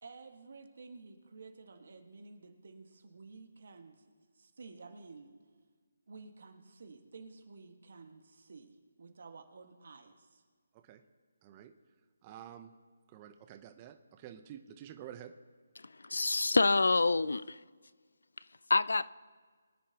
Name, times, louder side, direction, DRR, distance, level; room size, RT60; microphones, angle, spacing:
voice 1, 0.0-4.0 4.3-5.4 6.1-10.4, right 4 dB, 65° right, 1.6 m, -52 dB
voice 2, 12.2-12.7 13.1-15.3, right 10 dB, 25° right, 0.8 m, -49 dB
voice 3, 16.0-17.6 18.7-19.1, left 3 dB, 85° left, 0.4 m, -27 dB
23.0 x 10.0 x 2.9 m
figure-of-eight pair, 160°, 0 cm